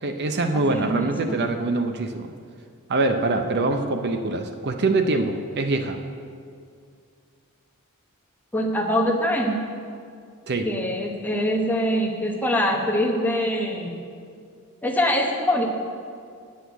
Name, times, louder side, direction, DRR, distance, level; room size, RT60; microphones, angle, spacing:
voice 1, 0.0-2.3 2.9-6.0 10.5-10.7, right 2 dB, 50° right, 6 dB, 0.6 m, -24 dB
voice 2, 0.5-1.4 8.5-9.6 10.6-13.9 14.8-15.7, equal, 10° left, 0 dB, 0.9 m, -24 dB
8.0 x 6.4 x 8.2 m, 2.3 s
head